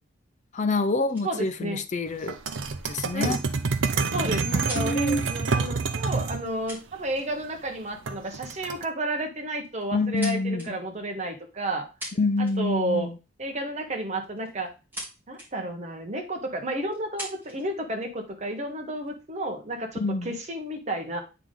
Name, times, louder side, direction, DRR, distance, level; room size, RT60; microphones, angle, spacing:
voice 1, 0.5-2.4 2.9-3.4 4.4-5.3 9.9-10.8 12.2-13.1 20.0-20.4, left 2 dB, 40° left, 0.6 m, -27 dB
sound 1, 1.1-1.3 3.3-5.1 6.2-6.3 6.7-7.5 7.8-8.1 9.0-9.2 9.6-10.7 11.7-11.8 12.0-12.8 14.2-15.1 15.3-15.5 16.1-16.2 16.9-17.7 18.4-19.1, equal, 10° right, 2.6 m, -41 dB
voice 2, 1.2-1.8 3.1-3.4 4.1-11.9 12.4-13.1 13.4-14.7 15.3-21.2, right 1 dB, 35° right, 1.2 m, -31 dB
sound 2, 2.3-6.4 8.1-8.8, right 4 dB, 75° right, 0.6 m, -27 dB
8.4 x 3.8 x 3.7 m
head